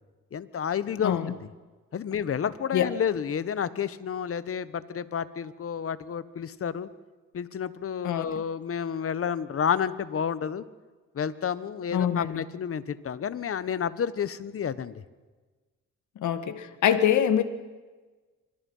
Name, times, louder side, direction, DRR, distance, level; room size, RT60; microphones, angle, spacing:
voice 1, 0.3-1.4 1.9-6.9 7.3-10.6 11.1-14.9, left 7 dB, 50° left, 15 dB, 1.4 m, -30 dB
voice 2, 1.0-1.3 2.7-2.9 8.0-8.3 11.9-12.4 16.2-17.4, left 9 dB, 75° left, 10 dB, 2.1 m, -24 dB
26.0 x 25.0 x 5.7 m, 1.3 s
cardioid pair, 90°, 30 cm